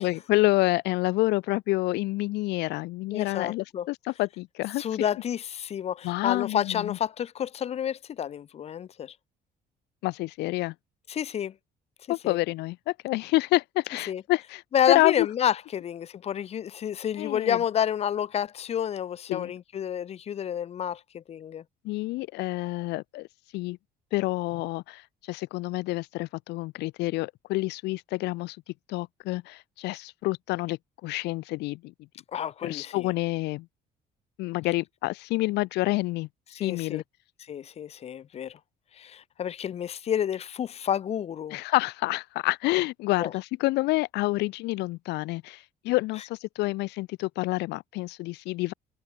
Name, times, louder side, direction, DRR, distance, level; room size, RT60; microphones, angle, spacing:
voice 1, 0.0-4.8 6.0-7.0 10.0-10.7 12.1-14.6 14.9-15.3 17.2-17.6 19.3-19.5 21.8-23.3 23.5-23.8 24.1-25.0 25.3-28.6 28.9-31.9 32.6-33.7 34.4-37.0 41.5-48.7, left 20 dB, 85° left, 0.6 m, -28 dB
voice 2, 3.1-3.9 4.8-9.1 11.1-11.5 12.2-12.4 14.1-14.2 14.7-21.6 32.3-33.1 36.5-37.0 37.5-38.6 39.0-41.6 43.2-43.3, left 9 dB, 40° left, 0.5 m, -29 dB
cardioid pair, 110°, 17 cm